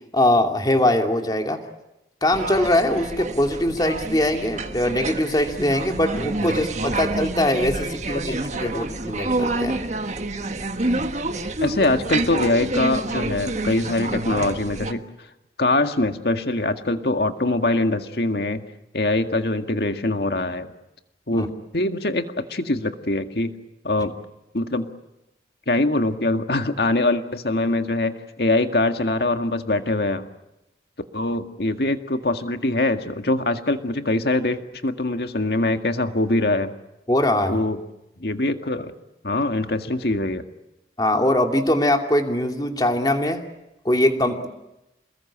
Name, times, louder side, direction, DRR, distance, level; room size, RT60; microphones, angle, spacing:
voice 1, 0.1-1.6 2.2-9.8 21.3-21.5 37.1-37.6 41.0-43.4 43.8-44.5, left 1 dB, 20° left, 4 dB, 2.7 m, -22 dB
sound 1, 2.3-14.9, right 2 dB, 40° right, 1.5 m, -28 dB
voice 2, 11.6-15.0 15.6-18.6 18.9-20.7 21.3-21.5 21.7-23.5 23.8-24.1 24.5-24.9 25.7-30.3 31.1-36.7 37.5-37.8 38.2-38.9 39.2-40.4, left 2 dB, 60° left, 7 dB, 1.9 m, -23 dB
28.0 x 21.0 x 8.8 m, 0.93 s
head